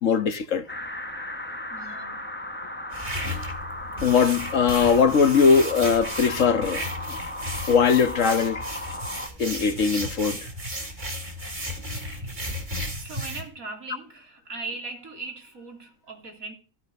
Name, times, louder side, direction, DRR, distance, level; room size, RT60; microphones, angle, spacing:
voice 1, 0.0-0.6 4.0-7.2 7.7-8.6 9.4-10.4, left 6 dB, 65° left, 1.7 m, -20 dB
sound 1, 0.7-9.3, left 1 dB, 10° left, 1.1 m, -36 dB
voice 2, 1.7-2.3 12.2-12.7 13.0-16.6, right 3 dB, 75° right, 3.5 m, -39 dB
sound 2, 2.9-13.4, equal, 30° right, 3.4 m, -34 dB
15.5 x 14.0 x 5.4 m
omnidirectional pair, 1.5 m